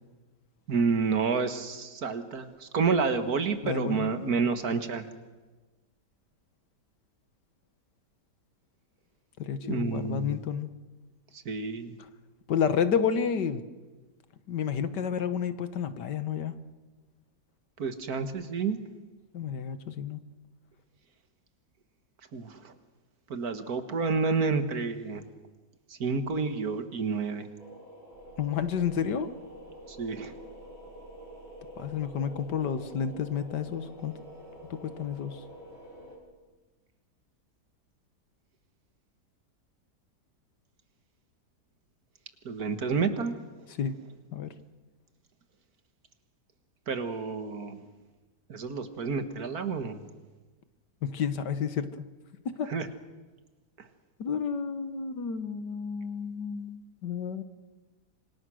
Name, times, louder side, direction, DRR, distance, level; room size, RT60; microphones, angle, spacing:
voice 1, 0.7-5.1 9.6-10.4 11.3-12.0 17.8-18.8 22.3-22.7 23.3-25.2 25.9-27.5 29.9-30.3 42.5-43.3 43.6-43.7 46.9-47.8 48.5-50.1 52.6-52.9 53.8-53.9, right 5 dB, 65° right, 9 dB, 2.1 m, -29 dB
voice 2, 3.6-4.1 9.4-10.7 12.5-13.6 14.5-16.6 19.3-20.2 28.4-29.3 31.8-34.1 34.7-35.4 43.8-44.0 44.3-44.5 51.0-52.0 52.6-52.7 54.2-57.4, left 7 dB, 90° left, 12 dB, 1.9 m, -30 dB
sound 1, 27.6-36.2, equal, 40° right, 7.0 m, -47 dB
26.5 x 25.5 x 6.4 m, 1.3 s
omnidirectional pair, 1.8 m